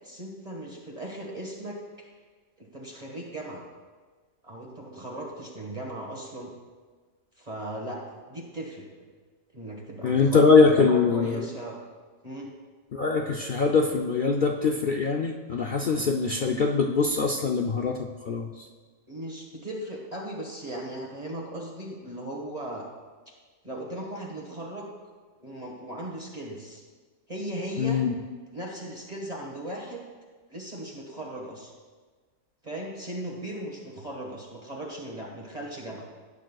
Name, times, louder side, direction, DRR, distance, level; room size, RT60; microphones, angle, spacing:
voice 1, 0.0-1.8 2.6-3.6 4.4-6.5 7.4-8.9 9.5-11.8 12.2-12.5 19.1-22.9 23.6-24.9 25.4-26.8 27.3-28.0 28.5-30.0 30.5-31.7 32.6-36.1, right 1 dB, 30° right, -2 dB, 1.7 m, -37 dB
voice 2, 10.0-11.5 12.9-18.7 27.8-28.1, left 4 dB, 55° left, 1 dB, 0.6 m, -23 dB
17.5 x 9.0 x 2.3 m, 1.4 s
omnidirectional pair, 1.4 m